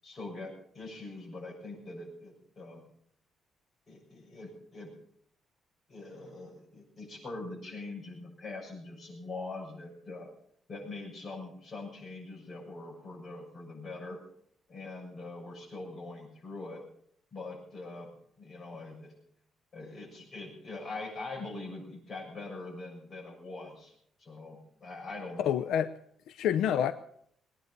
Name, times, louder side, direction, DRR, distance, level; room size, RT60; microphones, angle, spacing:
voice 1, 0.0-2.8 3.9-4.9 5.9-10.3 10.7-14.2 14.7-16.8 17.3-18.1 18.4-19.1 19.7-23.9 24.2-25.5, left 2 dB, 30° left, 6.8 m, -43 dB
voice 2, 25.4-25.9 26.3-26.9, left 9 dB, 85° left, 0.7 m, -27 dB
21.0 x 9.9 x 6.7 m
cardioid pair, 180°, 0 cm